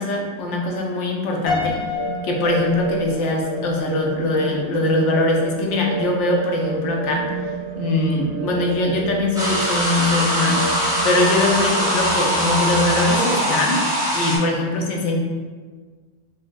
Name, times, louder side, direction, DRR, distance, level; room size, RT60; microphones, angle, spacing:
voice 1, 0.0-1.8 2.2-7.3 7.8-10.6 11.0-13.9 14.1-15.2, left 2 dB, 85° left, 0 dB, 0.9 m, -22 dB
Piano, 1.5-3.7, left 5 dB, 55° left, 0.9 m, -28 dB
sound 1, 1.9-13.4, right 3 dB, 80° right, 0.9 m, -30 dB
sound 2, 9.3-14.4, equal, 5° right, 0.4 m, -22 dB
3.8 x 2.1 x 2.4 m, 1.5 s
omnidirectional pair, 1.2 m